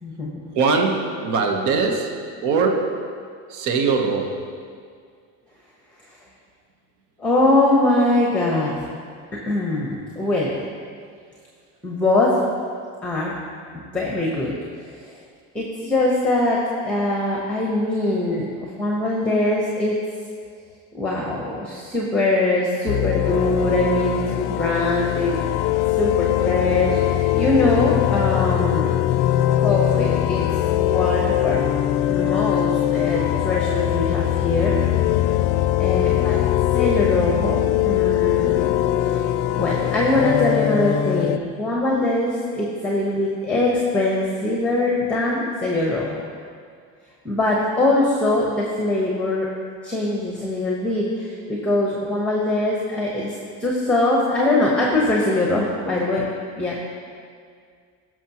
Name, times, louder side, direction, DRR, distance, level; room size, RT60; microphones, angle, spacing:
voice 1, 0.0-0.4 7.2-8.8 9.5-10.6 11.8-12.4 13.0-13.3 13.7-14.6 14.9-15.1 15.5-20.0 20.9-25.7 26.0-28.9 29.6-30.4 30.7-31.7 32.1-34.8 35.8-36.4 36.7-38.7 39.1-39.2 39.5-46.2 47.2-49.5 49.8-56.8, left 2 dB, 5° left, -3 dB, 1.0 m, -22 dB
voice 2, 0.5-3.2 3.5-4.5, right 4 dB, 65° right, 3 dB, 1.1 m, -22 dB
sound 1, 22.9-41.4, left 13 dB, 75° left, 0.5 m, -21 dB
17.0 x 6.2 x 3.0 m, 2.1 s
cardioid pair, 150°, 32 cm